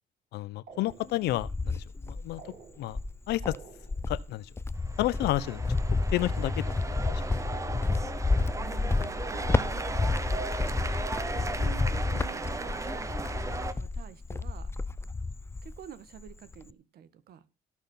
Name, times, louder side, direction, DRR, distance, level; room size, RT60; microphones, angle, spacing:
voice 1, 0.3-3.0 3.3-3.6 4.1-4.5 5.0-5.6 6.1-6.6, left 15 dB, 80° left, 0.8 m, -31 dB
sound 1, 0.7-1.4 2.4-3.1 3.4-4.2 7.5-8.2 9.2-9.9 10.3-11.0, right 5 dB, 50° right, 7.2 m, -50 dB
Cricket, 0.9-2.4 2.9-15.9 16.2-16.7, left 3 dB, 15° left, 0.7 m, -30 dB
sound 2, 4.8-13.7, right 3 dB, 20° right, 1.4 m, -37 dB
voice 2, 8.5-10.5 11.2-14.7 15.6-17.4, right 10 dB, 65° right, 2.0 m, -48 dB
17.0 x 6.5 x 5.7 m
cardioid pair, 110°, 17 cm